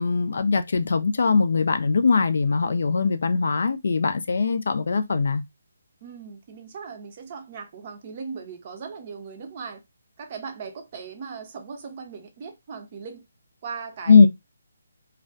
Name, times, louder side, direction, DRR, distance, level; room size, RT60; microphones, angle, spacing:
voice 1, 0.0-5.4 14.1-14.3, left 4 dB, 60° left, 0.3 m, -20 dB
voice 2, 6.0-9.8 10.2-13.2 13.6-14.3, right 5 dB, 35° right, 0.6 m, -38 dB
2.3 x 2.2 x 2.5 m
figure-of-eight pair, 145°, 0 cm